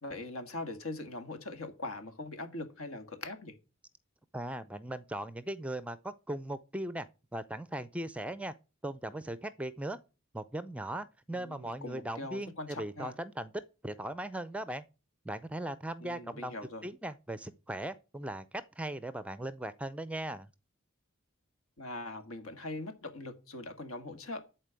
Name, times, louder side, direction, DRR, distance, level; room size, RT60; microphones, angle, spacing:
voice 1, 0.0-3.6 11.3-13.2 16.0-16.9 21.8-24.4, left 2 dB, 75° left, 2.0 m, -41 dB
voice 2, 4.3-7.1 7.3-8.5 8.8-10.0 10.3-13.5 13.8-14.8 15.3-16.5 16.8-18.4 18.8-20.5, right 1 dB, 5° right, 0.4 m, -38 dB
11.0 x 4.5 x 8.1 m
head